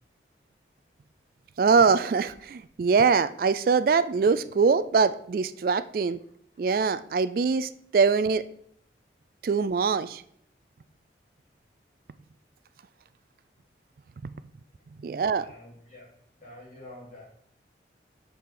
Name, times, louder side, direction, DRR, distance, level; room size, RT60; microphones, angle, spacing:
voice 1, 1.6-6.2 6.6-8.4 9.4-10.2 14.2-14.3 15.0-15.5, right 5 dB, 50° right, 14 dB, 0.3 m, -23 dB
voice 2, 15.1-16.1 16.4-17.3, left 1 dB, 45° left, -5 dB, 3.7 m, -48 dB
8.2 x 6.6 x 3.8 m, 0.68 s
head